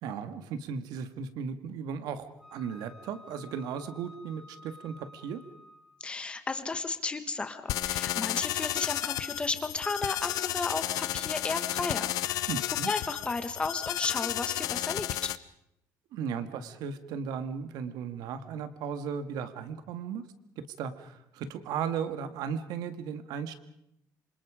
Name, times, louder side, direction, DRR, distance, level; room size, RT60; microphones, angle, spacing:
voice 1, 0.0-5.4 12.5-12.9 16.1-20.2 20.6-23.5, right 7 dB, 85° right, 10 dB, 2.0 m, -36 dB
Wind instrument woodwind instrument, 2.4-6.0, left 1 dB, 5° right, 5.5 m, -52 dB
voice 2, 6.0-12.5 12.8-15.3, left 3 dB, 15° left, 9 dB, 1.5 m, -34 dB
sound 1, 7.7-15.4, left 14 dB, 70° left, 0.9 m, -32 dB
27.0 x 26.5 x 5.1 m, 0.77 s
cardioid pair, 180°, 7 cm